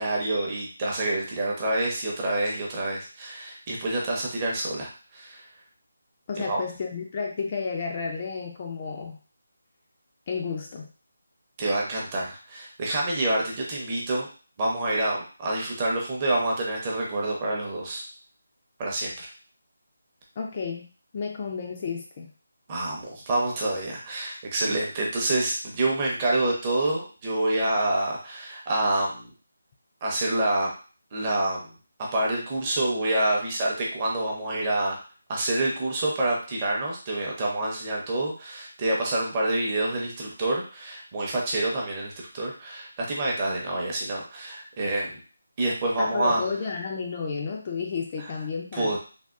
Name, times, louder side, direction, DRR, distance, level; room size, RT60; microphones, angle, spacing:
voice 1, 0.0-5.4 6.4-6.6 11.6-14.3 14.6-18.1 18.8-19.3 22.7-29.3 30.0-30.7 31.1-31.6 32.0-35.0 35.3-45.2 45.6-46.4 48.2-48.3 48.7-49.0, right 2 dB, 20° right, -3 dB, 0.6 m, -27 dB
voice 2, 6.3-9.2 10.3-10.9 20.4-20.9 21.1-22.3 46.0-49.0, left 5 dB, 25° left, 0 dB, 0.3 m, -31 dB
3.4 x 2.2 x 2.4 m, 0.37 s
figure-of-eight pair, 175°, 0 cm